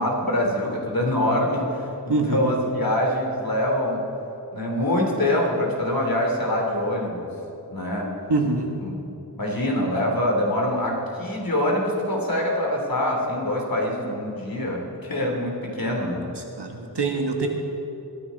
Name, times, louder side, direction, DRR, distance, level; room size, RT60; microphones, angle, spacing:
voice 1, 0.0-4.0 4.5-7.3 7.7-8.1 8.8-8.9 9.3-16.2, left 1 dB, 55° left, -1 dB, 2.9 m, -24 dB
voice 2, 2.1-2.5 8.3-8.8 16.6-17.5, right 3 dB, 75° right, 2 dB, 1.6 m, -24 dB
21.0 x 10.0 x 4.1 m, 2.8 s
wide cardioid pair, 45°, 41 cm